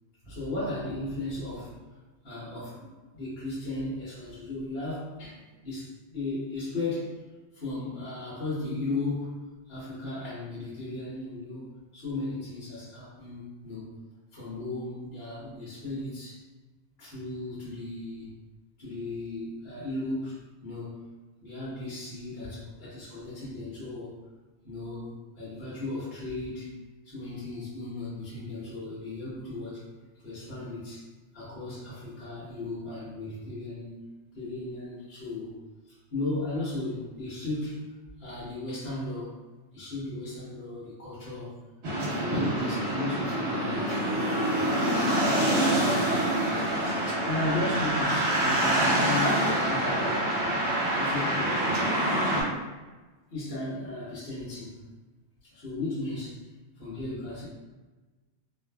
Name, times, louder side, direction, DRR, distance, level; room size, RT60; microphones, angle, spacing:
voice 1, 0.2-1.7 2.2-7.2 7.5-11.7 11.9-13.9 14.3-16.4 17.0-18.3 18.8-21.0 21.4-24.2 24.6-26.7 27.0-29.8 30.2-31.0 31.3-34.0 34.3-35.5 35.9-37.9 38.2-39.4 39.7-41.6 42.1-51.7 52.1-52.5 53.3-54.8 55.4-56.4 56.8-57.4, left 2 dB, 60° left, -10 dB, 1.1 m, -36 dB
sound 1, 41.8-52.4, right 1 dB, 80° right, 1.1 m, -26 dB
2.6 x 2.4 x 2.2 m, 1.2 s
omnidirectional pair, 1.1 m